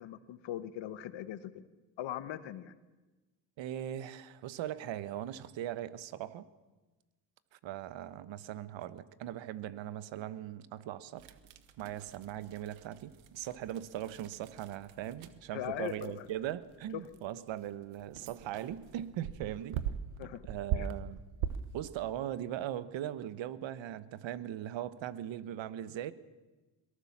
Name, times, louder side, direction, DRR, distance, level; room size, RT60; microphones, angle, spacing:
voice 1, 0.0-1.6 2.0-2.7 15.5-16.3 20.2-20.4 20.7-20.9, left 12 dB, 70° left, 1.4 m, -40 dB
voice 2, 3.6-6.5 7.5-11.3 11.8-19.8 20.5-21.2 21.7-26.1, right 11 dB, 75° right, 1.2 m, -40 dB
sound 1, 11.2-21.9, right 9 dB, 90° right, 1.3 m, -42 dB
22.0 x 18.5 x 7.3 m
cardioid pair, 80°, 46 cm